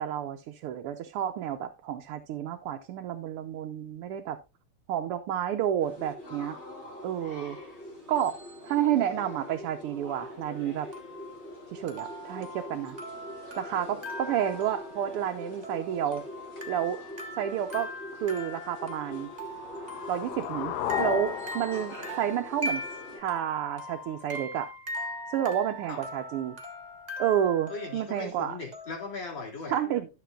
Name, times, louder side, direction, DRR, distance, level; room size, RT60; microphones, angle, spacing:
voice 1, 0.0-4.4 4.9-6.6 7.0-7.6 8.1-8.3 8.6-10.9 11.7-13.0 13.6-16.2 16.7-17.0 17.4-17.9 18.2-19.3 20.1-22.8 23.2-24.7 25.3-26.6 27.2-28.6 29.7-30.1, right 10 dB, 90° right, 1.8 m, -30 dB
sound 1, 5.8-23.2, left 1 dB, 30° left, 3.8 m, -44 dB
sound 2, 9.2-9.7 10.9-29.2, left 1 dB, 20° right, 1.3 m, -41 dB
sound 3, 19.2-23.2, left 11 dB, 75° left, 0.9 m, -35 dB
voice 2, 27.7-29.8, left 4 dB, 60° left, 3.7 m, -38 dB
12.5 x 6.9 x 2.4 m
omnidirectional pair, 2.4 m